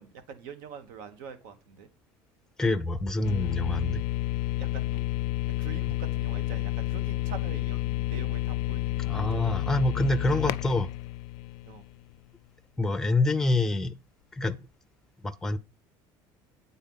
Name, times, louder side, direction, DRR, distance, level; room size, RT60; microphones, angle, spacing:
voice 1, 0.0-1.9 4.6-5.0 5.6-9.5 10.4-10.5 11.7-11.9, right 6 dB, 90° right, 1.4 m, -45 dB
voice 2, 2.6-4.1 9.1-10.9 12.8-14.0 14.4-14.6 15.2-15.6, left 2 dB, 5° left, 0.5 m, -26 dB
sound 1, 3.2-12.1, left 15 dB, 65° left, 0.4 m, -30 dB
9.1 x 4.1 x 5.5 m
cardioid pair, 170°, 10 cm